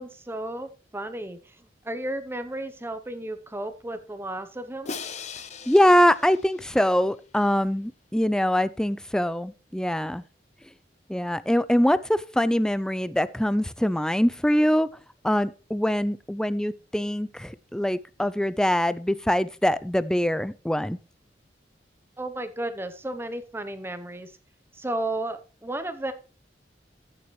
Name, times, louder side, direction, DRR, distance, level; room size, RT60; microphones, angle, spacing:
voice 1, 0.0-1.4 1.8-4.9 22.2-24.3 24.8-26.1, right 1 dB, 15° right, 0.8 m, -33 dB
Crash cymbal, 4.9-7.1, left 5 dB, 40° left, 0.9 m, -39 dB
voice 2, 5.7-10.2 11.1-14.9 15.2-21.0, equal, 5° left, 0.4 m, -23 dB
15.0 x 6.9 x 3.1 m
head